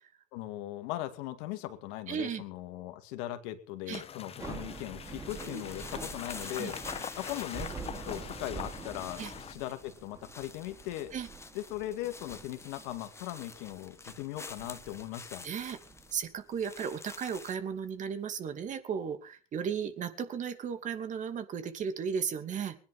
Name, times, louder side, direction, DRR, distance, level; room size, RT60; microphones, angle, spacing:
voice 1, 0.3-6.8 7.2-11.1 11.5-15.5, left 14 dB, 70° left, 9 dB, 2.2 m, -39 dB
voice 2, 2.1-2.4 3.9-4.0 5.4-5.6 6.4-6.7 9.2-9.3 11.1-11.3 15.4-15.8 16.1-22.8, right 7 dB, 45° right, 8 dB, 2.9 m, -35 dB
sound 1, 3.9-9.5, left 8 dB, 35° left, 1.2 m, -44 dB
Thunder / Rain, 4.2-17.4, right 5 dB, 20° right, 2.8 m, -47 dB
sound 2, 4.7-17.6, left 3 dB, 15° left, 1.6 m, -48 dB
20.5 x 10.5 x 5.7 m, 0.39 s
hypercardioid pair, 85°, 18 cm